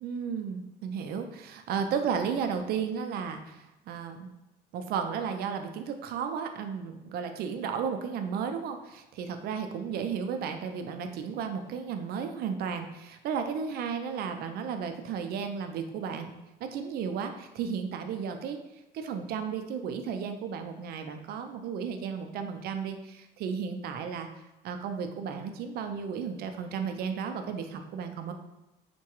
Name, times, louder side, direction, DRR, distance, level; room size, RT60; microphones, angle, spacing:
voice 1, 0.0-4.3 4.7-16.3 16.6-18.6 18.9-24.3 24.6-28.3, right 6 dB, 65° right, 7 dB, 0.4 m, -34 dB
4.6 x 2.2 x 2.9 m, 0.97 s
cardioid pair, 110°, 17 cm